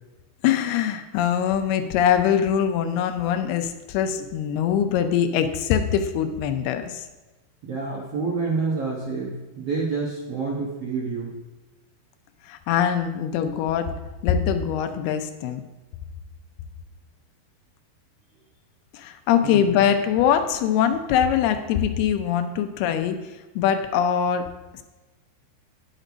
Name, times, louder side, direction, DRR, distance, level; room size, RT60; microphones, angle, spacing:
voice 1, 0.4-7.1 12.5-13.9 14.2-15.6 18.9-24.5, left 9 dB, 80° left, 8 dB, 2.6 m, -23 dB
voice 2, 7.6-11.3 19.4-19.8, right 4 dB, 65° right, -4 dB, 1.5 m, -28 dB
10.0 x 6.7 x 5.1 m, 1.1 s
omnidirectional pair, 4.6 m